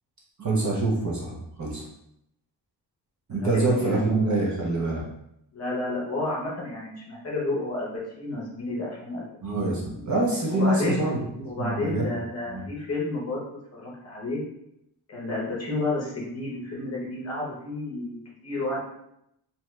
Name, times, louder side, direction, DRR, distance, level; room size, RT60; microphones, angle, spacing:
voice 1, 0.4-1.8 3.3-5.0 9.4-11.2 11.6-12.0 12.5-12.7, right 2 dB, 40° right, -3 dB, 0.6 m, -25 dB
voice 2, 3.3-4.3 5.5-9.3 9.5-10.0 10.5-11.0 11.4-13.4 13.8-14.4 15.1-18.8, left 2 dB, 35° left, -4 dB, 0.7 m, -31 dB
2.8 x 2.3 x 3.0 m, 0.79 s
wide cardioid pair, 180°, 46 cm